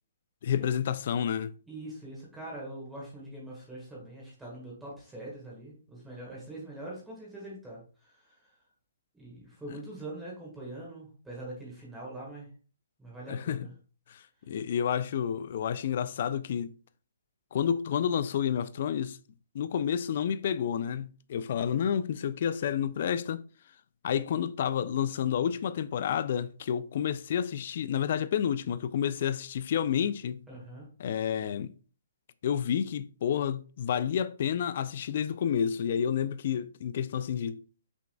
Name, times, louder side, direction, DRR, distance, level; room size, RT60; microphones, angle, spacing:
voice 1, 0.4-1.5 9.7-9.8 13.3-13.7 14.1-16.7 17.5-19.2 19.5-23.4 24.0-30.4 31.0-31.7 32.4-37.6, left 8 dB, 50° left, 0.3 m, -30 dB
voice 2, 1.7-8.5 9.1-12.5 13.0-13.7 30.5-30.9, right 1 dB, 5° right, 1.6 m, -43 dB
6.0 x 3.8 x 2.3 m
hypercardioid pair, 150°, 0 cm